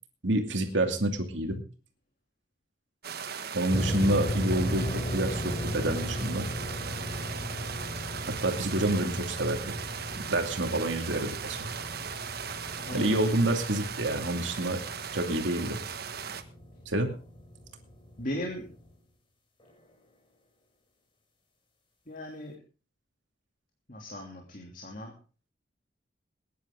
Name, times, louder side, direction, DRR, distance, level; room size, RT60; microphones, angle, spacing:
voice 1, 0.2-1.6 3.5-6.5 8.3-9.8 10.3-11.7 12.9-14.8 15.1-15.8 16.9-17.2, right 1 dB, 75° right, 4 dB, 2.5 m, -28 dB
sound 1, 3.0-16.4, right 7 dB, 55° right, 1.3 m, -38 dB
sound 2, 3.7-18.9, left 1 dB, 25° left, 3.4 m, -37 dB
voice 2, 12.8-13.2 18.2-18.6 22.1-22.5 23.9-25.1, left 1 dB, 45° left, 1 dB, 3.0 m, -37 dB
20.5 x 11.0 x 3.8 m, 0.36 s
head